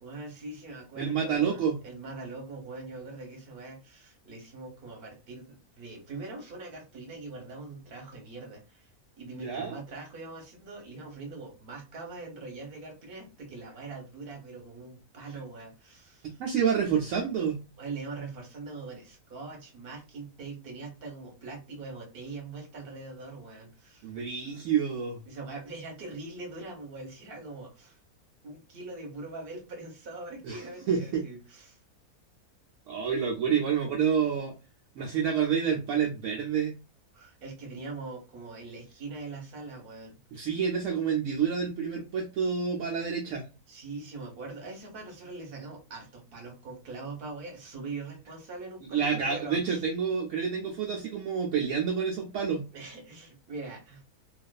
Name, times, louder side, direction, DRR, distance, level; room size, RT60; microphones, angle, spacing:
voice 1, 0.0-8.9 9.2-16.4 17.8-24.1 25.3-28.0 28.4-31.8 37.1-40.2 43.7-49.8 52.7-54.0, right 3 dB, 45° right, 1 dB, 1.0 m, -42 dB
voice 2, 1.0-1.8 9.4-9.8 16.4-17.6 24.0-25.2 30.4-31.2 32.9-34.5 35.0-36.8 40.3-43.5 48.9-52.6, right 7 dB, 70° right, 0 dB, 0.9 m, -28 dB
2.4 x 2.4 x 2.2 m, 0.29 s
omnidirectional pair, 1.6 m